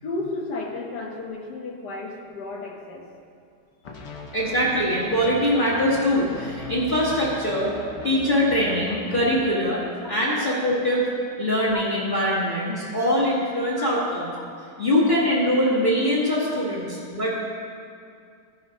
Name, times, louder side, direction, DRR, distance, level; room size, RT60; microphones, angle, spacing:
voice 1, 0.0-3.1 11.7-11.8 13.8-13.9, left 2 dB, 80° left, 0 dB, 1.8 m, -33 dB
sound 1, 3.8-9.4, left 2 dB, 50° left, 1.3 m, -39 dB
voice 2, 4.3-7.7 8.0-9.8 10.1-11.1 11.4-14.3 14.8-17.4, equal, 30° left, -7 dB, 1.6 m, -22 dB
14.5 x 5.5 x 5.1 m, 2.3 s
omnidirectional pair, 1.8 m